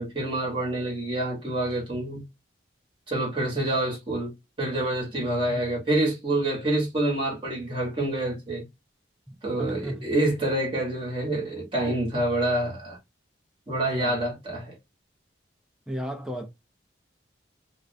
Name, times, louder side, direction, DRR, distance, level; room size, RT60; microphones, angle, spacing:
voice 1, 0.0-2.2 3.1-4.3 4.6-8.6 9.4-13.0 13.7-14.8, right 1 dB, 30° right, 0.9 m, -27 dB
voice 2, 9.4-10.1 13.9-14.2 15.9-16.5, equal, 5° right, 0.4 m, -34 dB
2.4 x 2.1 x 2.5 m
head